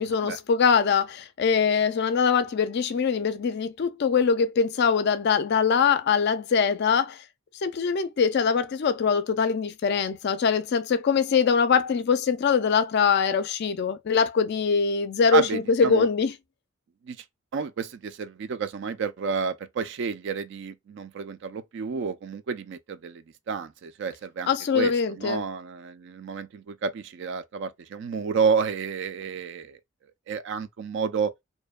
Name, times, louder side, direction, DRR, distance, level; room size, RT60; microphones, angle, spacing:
voice 1, 0.0-7.2 7.6-16.3 24.5-25.4, left 6 dB, 50° left, 0.3 m, -23 dB
voice 2, 15.3-16.1 17.1-17.2 17.5-24.9 25.2-29.8 30.3-31.3, right 5 dB, 55° right, 0.3 m, -30 dB
2.6 x 2.1 x 2.3 m
head